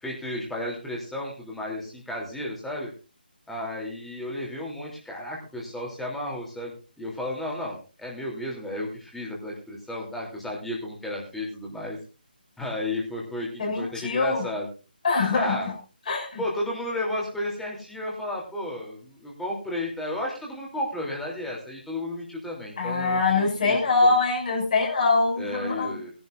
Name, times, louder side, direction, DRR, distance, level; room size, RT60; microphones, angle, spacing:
voice 1, 0.0-2.9 3.5-12.0 12.6-14.7 15.3-15.7 16.4-23.8 24.0-24.1 25.4-26.1, left 1 dB, 5° left, -3 dB, 3.1 m, -33 dB
voice 2, 13.6-14.5 15.0-15.7 16.1-16.4 22.8-26.0, left 3 dB, 50° left, -1 dB, 6.2 m, -23 dB
20.5 x 11.5 x 2.6 m, 0.31 s
figure-of-eight pair, 150°, 5 cm